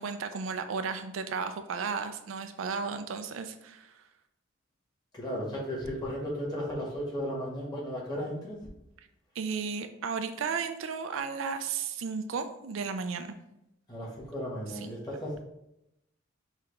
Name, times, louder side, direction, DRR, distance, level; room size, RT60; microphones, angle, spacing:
voice 1, 0.0-3.9 9.4-13.4 14.7-14.9, right 5 dB, 70° right, 9 dB, 0.4 m, -34 dB
voice 2, 5.1-8.6 13.9-15.4, equal, 20° left, -4 dB, 1.4 m, -35 dB
5.8 x 2.4 x 3.2 m, 0.86 s
head